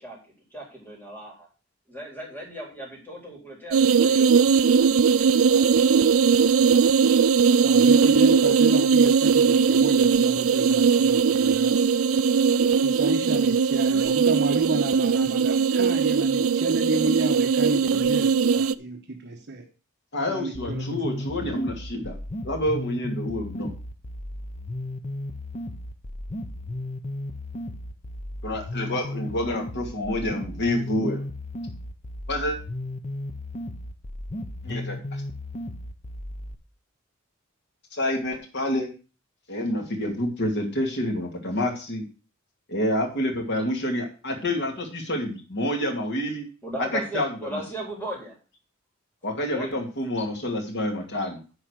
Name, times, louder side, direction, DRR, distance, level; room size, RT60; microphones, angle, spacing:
voice 1, 0.0-1.5 1.9-5.7 46.6-48.3 49.4-49.9, right 1 dB, 10° left, 3.8 m, -37 dB
sound 1, 3.7-18.7, right 6 dB, 85° right, 0.4 m, -20 dB
voice 2, 7.6-11.8 12.8-19.7 20.3-21.2 21.5-21.7, right 2 dB, 55° right, 1.1 m, -30 dB
voice 3, 20.1-22.1 22.4-23.7 28.4-31.2 32.3-32.6 34.6-35.2 37.9-38.9 39.5-42.0 42.7-46.5 46.9-47.5 49.2-51.4, left 1 dB, 55° left, 2.4 m, -28 dB
sound 2, 20.5-36.5, left 1 dB, 35° left, 0.8 m, -35 dB
9.8 x 4.7 x 6.4 m
head